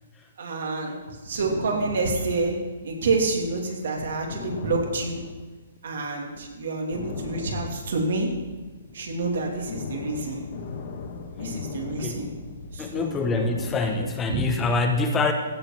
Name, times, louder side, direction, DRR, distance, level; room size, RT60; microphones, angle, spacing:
voice 1, 0.4-2.6 2.8-5.2 5.8-8.3 8.9-10.4 11.4-12.3 12.7-13.2 14.0-14.5, right 3 dB, 70° right, 1 dB, 2.7 m, -28 dB
sound 1, 1.0-3.5 3.8-3.9 4.3-5.9 6.3-6.5 6.9-14.2, left 4 dB, 50° left, 1.5 m, -37 dB
voice 2, 11.9-12.3 12.8-15.3, left 3 dB, 15° left, 5 dB, 1.0 m, -25 dB
15.5 x 5.2 x 5.9 m, 1.3 s
hypercardioid pair, 150°, 0 cm